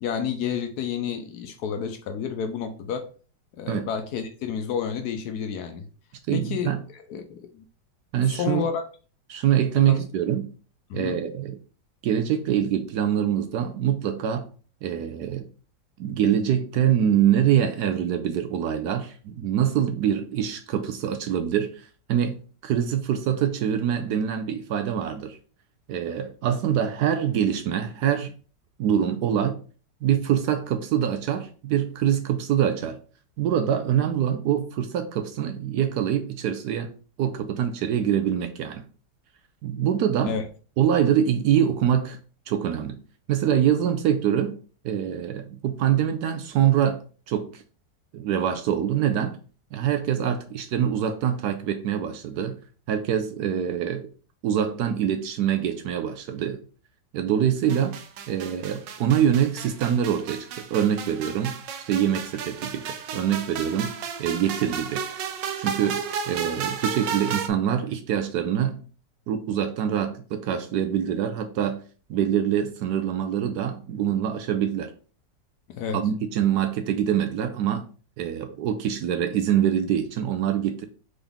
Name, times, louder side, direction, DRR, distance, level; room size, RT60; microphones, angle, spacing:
voice 1, 0.0-3.1 3.5-5.9 6.3-7.6 8.3-8.8 9.9-10.0 10.9-11.2 40.3-40.5 75.7-76.0, left 7 dB, 70° left, 1.0 m, -30 dB
voice 2, 6.3-6.8 8.1-8.7 9.3-10.5 10.9-11.6 12.0-14.5 14.8-15.5 16.0-21.8 22.1-25.4 25.9-28.3 28.8-29.6 30.0-33.0 33.4-36.9 37.2-38.8 39.6-40.4 40.8-42.2 42.5-43.0 43.3-44.6 44.8-47.0 47.3-47.6 48.1-49.4 49.7-52.6 52.9-54.1 54.4-56.6 57.1-58.0 58.3-61.6 61.9-65.0 65.6-68.8 69.3-71.8 72.1-74.9 75.9-77.9 78.2-80.8, right 9 dB, 70° right, 1.0 m, -24 dB
sound 1, 57.7-67.5, right 6 dB, 85° right, 1.3 m, -33 dB
3.9 x 3.6 x 3.5 m
omnidirectional pair, 1.9 m